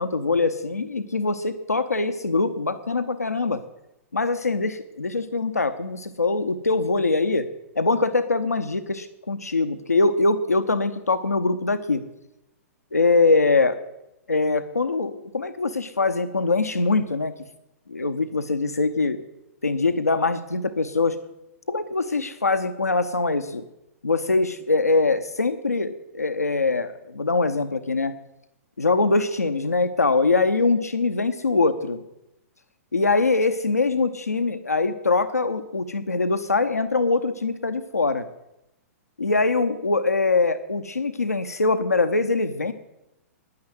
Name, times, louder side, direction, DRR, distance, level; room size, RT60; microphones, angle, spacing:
voice 1, 0.0-3.6 4.1-7.5 7.8-12.0 12.9-13.7 14.3-17.3 17.9-19.2 19.6-21.2 21.7-23.6 24.0-28.1 28.8-32.0 32.9-38.3 39.2-42.7, left 3 dB, 80° left, 10 dB, 0.8 m, -23 dB
10.5 x 9.6 x 8.0 m, 0.91 s
figure-of-eight pair, 110°, 8 cm